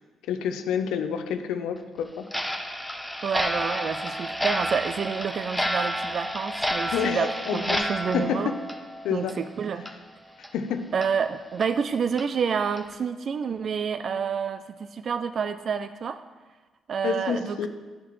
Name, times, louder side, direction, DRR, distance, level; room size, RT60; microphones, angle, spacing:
voice 1, 0.3-2.3 6.9-7.8 8.1-8.5 9.0-9.3 10.5-10.8 17.0-17.7, left 7 dB, 85° left, 8 dB, 0.6 m, -28 dB
Clock, 2.3-9.5 9.8-9.9 10.4-10.5 11.0-11.1 11.6-11.7 12.2-12.3 12.8-12.9, equal, ahead, 0.7 m, -30 dB
voice 2, 3.2-8.5 9.1-9.9 10.9-16.2 16.9-17.7, right 6 dB, 55° right, 11 dB, 0.3 m, -28 dB
10.5 x 5.8 x 3.1 m, 1.3 s
cardioid pair, 90°, 0 cm